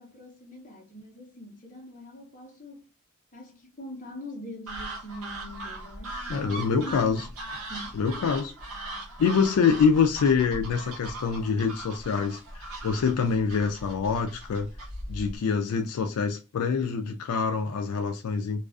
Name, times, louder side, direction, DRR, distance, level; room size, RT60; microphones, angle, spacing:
voice 1, 0.0-2.9 3.3-7.3 7.7-8.5, left 1 dB, 35° left, 0.8 m, -42 dB
sound 1, 4.7-15.4, right 1 dB, 70° right, 0.9 m, -39 dB
voice 2, 6.3-7.2 7.9-8.5 9.2-14.7 15.1-18.6, left 5 dB, 80° left, 0.4 m, -25 dB
2.3 x 2.3 x 2.3 m
head